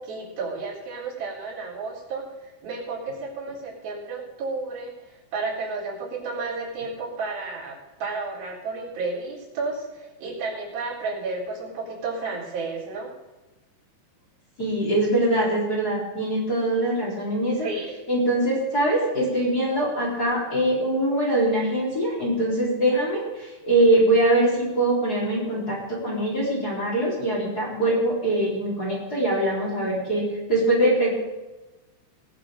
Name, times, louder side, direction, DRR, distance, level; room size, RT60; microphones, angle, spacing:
voice 1, 0.0-13.1 17.6-17.9, right 3 dB, 70° right, -6 dB, 5.9 m, -32 dB
voice 2, 14.6-17.7 18.1-31.1, right 1 dB, 25° left, -5 dB, 4.4 m, -23 dB
21.0 x 7.4 x 5.2 m, 1.1 s
omnidirectional pair, 4.4 m